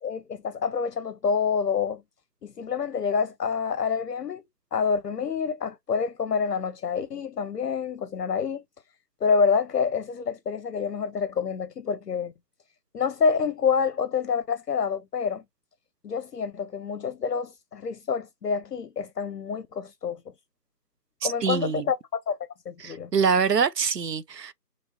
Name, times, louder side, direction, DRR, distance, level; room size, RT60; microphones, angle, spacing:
voice 1, 0.0-2.0 2.4-4.4 4.7-8.6 9.2-12.3 12.9-15.4 16.0-20.2 21.2-22.4 22.7-23.1, left 6 dB, 75° left, 0.6 m, -27 dB
voice 2, 21.2-21.9 22.8-24.5, right 6 dB, 80° right, 0.7 m, -25 dB
4.1 x 3.1 x 2.5 m
figure-of-eight pair, 175°, 49 cm